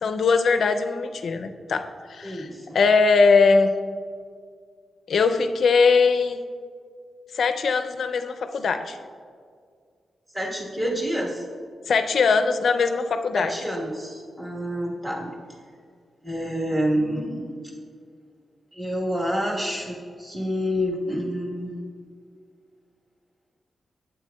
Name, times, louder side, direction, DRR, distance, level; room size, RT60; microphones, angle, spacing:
voice 1, 0.0-2.5 2.7-3.7 5.1-6.4 7.3-9.0 11.9-13.5, left 4 dB, 65° left, 8 dB, 0.4 m, -21 dB
voice 2, 2.2-2.8 10.3-11.4 13.3-15.3 16.2-17.5 18.7-21.8, equal, 25° right, -3 dB, 1.3 m, -28 dB
9.0 x 7.7 x 2.3 m, 2.1 s
wide cardioid pair, 125°, 0 cm